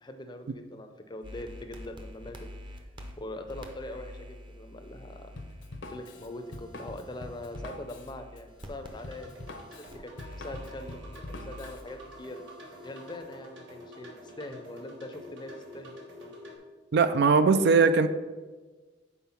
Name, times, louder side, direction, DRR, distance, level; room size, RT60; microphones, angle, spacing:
voice 1, 0.0-2.4 3.2-5.3 5.9-12.4 12.8-15.9, left 1 dB, 25° left, 6 dB, 0.5 m, -42 dB
sound 1, 1.2-13.2, equal, 25° right, 0.7 m, -48 dB
Drum kit, 5.4-11.8, left 2 dB, 70° left, 0.7 m, -44 dB
sound 2, 8.9-16.6, left 1 dB, 80° right, 1.4 m, -48 dB
voice 2, 16.9-18.1, right 4 dB, 60° right, 11 dB, 0.3 m, -20 dB
5.6 x 4.6 x 5.7 m, 1.3 s
head